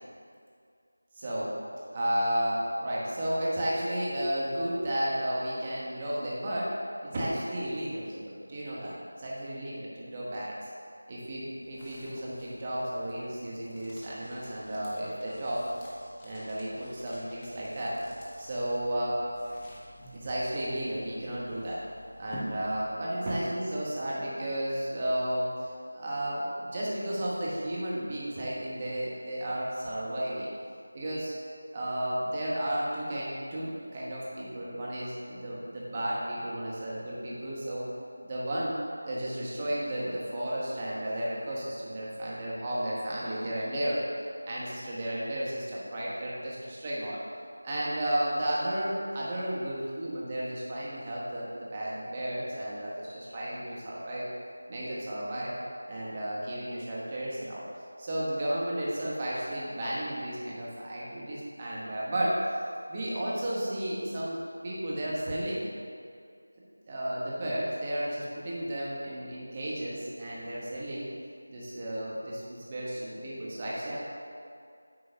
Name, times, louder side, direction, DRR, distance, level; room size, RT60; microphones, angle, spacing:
voice 1, 1.1-1.5 1.9-6.7 7.1-10.7 11.1-15.7 15.9-18.0 18.4-19.2 20.1-21.8 22.2-30.5 30.9-31.3 31.7-37.9 38.2-44.0 44.5-47.2 47.6-54.3 54.7-55.6 55.9-57.6 58.0-62.4 62.9-65.7 66.9-71.1 71.5-74.0, right 1 dB, 20° right, -6 dB, 1.3 m, -33 dB
sound 1, 11.1-23.2, equal, 15° left, 0.7 m, -50 dB
8.8 x 3.8 x 5.8 m, 2.3 s
figure-of-eight pair, 175°, 0 cm